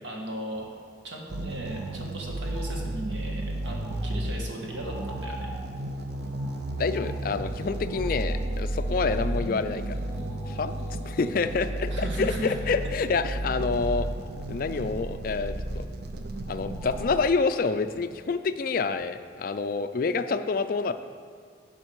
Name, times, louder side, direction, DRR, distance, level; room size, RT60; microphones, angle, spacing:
voice 1, 0.0-0.7 1.0-5.5 11.9-12.5, right 1 dB, 75° right, -1 dB, 1.5 m, -37 dB
Bird, 0.5-19.6 20.0-20.1, left 1 dB, 5° right, 0.9 m, -51 dB
sound 1, 1.3-17.2, right 1 dB, 55° right, 0.5 m, -33 dB
Abs pad, 6.7-12.2, equal, 20° left, 1.4 m, -45 dB
voice 2, 6.8-10.0 10.5-10.7 11.1-14.1 14.5-15.8 16.5-20.9, left 4 dB, 45° left, 10 dB, 0.3 m, -27 dB
11.0 x 5.9 x 4.6 m, 2.1 s
head